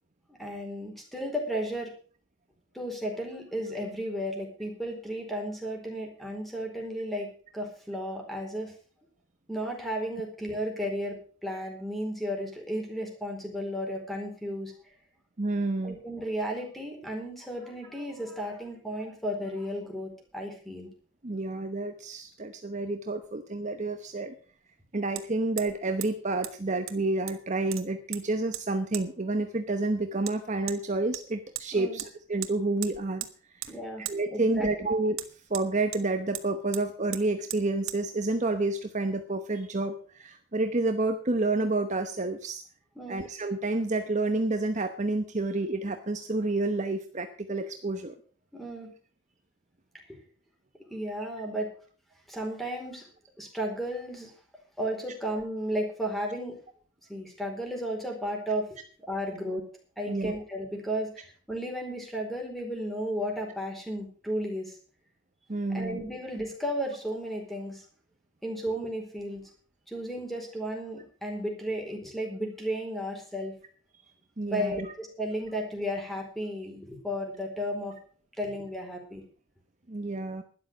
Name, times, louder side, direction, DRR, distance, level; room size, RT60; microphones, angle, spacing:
voice 1, 0.4-1.9 2.7-8.7 9.5-14.7 15.8-20.9 31.7-32.0 33.7-34.7 43.0-43.2 48.5-48.9 50.1-50.2 50.9-51.7 52.3-53.0 53.4-54.3 54.8-56.6 57.1-58.8 59.1-59.6 60.0-64.8 65.7-67.8 68.4-69.4 69.9-73.5 74.4-77.9 78.4-79.2, equal, ahead, 1 dB, 4.4 m, -34 dB
voice 2, 15.4-16.0 21.2-24.3 24.9-33.6 34.1-35.2 35.5-42.6 43.1-48.2 60.1-60.4 65.5-66.0 74.4-74.9 79.9-80.4, right 2 dB, 35° right, 7 dB, 0.9 m, -29 dB
Hammer, 23.2-23.3 25.2-25.3 25.6-25.8 26.0-26.1 26.4-26.5 26.9-27.4 27.7-28.2 28.5-28.6 28.9-29.1 30.3-30.4 30.7-30.8 31.1-31.7 32.0-32.1 32.4-32.5 32.8-33.3 33.6-33.7 34.0-34.2 35.1-36.0 36.3-36.5 36.7-36.8 37.1-37.2 37.5-37.6 37.9-38.0, right 13 dB, 85° right, 1.2 m, -37 dB
12.0 x 10.5 x 6.3 m, 0.42 s
head